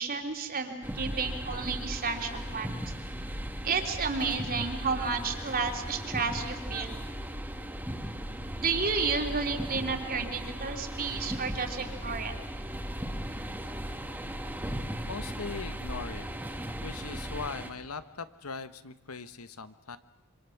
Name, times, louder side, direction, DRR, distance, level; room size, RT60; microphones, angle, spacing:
voice 1, 0.0-2.7 3.6-6.9 8.6-12.3, right 4 dB, 45° right, 4 dB, 3.3 m, -31 dB
sound 1, 0.8-17.7, equal, 10° right, 2.1 m, -37 dB
voice 2, 15.1-16.3 16.8-20.0, left 4 dB, 85° left, 12 dB, 1.3 m, -40 dB
26.5 x 25.0 x 7.2 m, 1.2 s
head